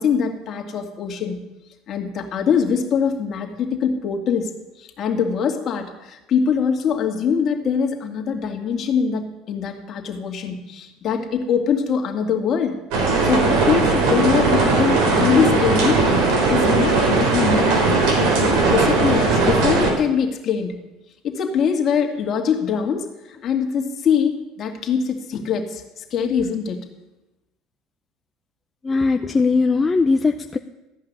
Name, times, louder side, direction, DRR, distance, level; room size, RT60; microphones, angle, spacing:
voice 1, 0.0-1.4 1.9-12.8 13.2-16.1 16.5-17.8 18.2-20.7 21.2-26.8, left 6 dB, 45° left, 3 dB, 2.2 m, -23 dB
sound 1, 12.9-19.9, right 3 dB, 75° right, 3.7 m, -18 dB
voice 2, 28.8-30.6, left 4 dB, 20° left, 6 dB, 0.6 m, -19 dB
14.0 x 5.7 x 9.5 m, 1.0 s
supercardioid pair, 110°, 0 cm